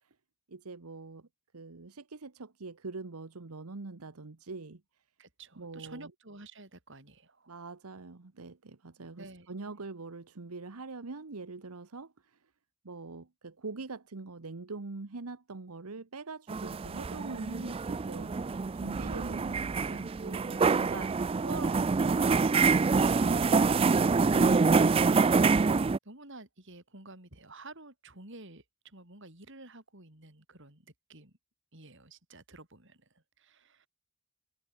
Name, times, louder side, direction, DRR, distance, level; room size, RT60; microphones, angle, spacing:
voice 1, 0.5-1.3 1.5-4.8 5.6-6.1 7.5-12.4 12.8-21.1, right 3 dB, 90° right, 1.1 m, -43 dB
voice 2, 5.2-7.6 9.2-9.5 19.8-20.8 21.4-22.5 26.0-31.3 31.7-33.9, right 2 dB, 55° right, 5.7 m, -50 dB
sound 1, 16.5-26.0, right 4 dB, 25° right, 0.3 m, -26 dB
head